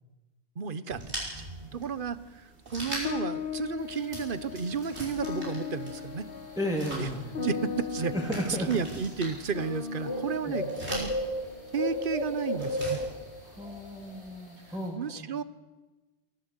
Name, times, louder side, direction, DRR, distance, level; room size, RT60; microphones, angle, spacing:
voice 1, 0.6-1.4 1.7-6.3 7.0-7.1 7.4-8.1 8.7-11.1 11.7-13.0 15.0-15.4, right 6 dB, 55° right, 15 dB, 1.1 m, -33 dB
sound 1, 0.9-14.2, right 1 dB, 75° right, 5.9 m, -43 dB
sound 2, 3.0-11.7, left 5 dB, 55° left, 1.4 m, -38 dB
sound 3, 3.8-14.9, equal, 85° left, 7.2 m, -37 dB
voice 2, 6.6-7.4 8.1-8.7 10.4-10.8 13.4-15.3, equal, 5° right, -2 dB, 2.2 m, -34 dB
23.5 x 15.0 x 8.1 m, 1.1 s
omnidirectional pair, 1.1 m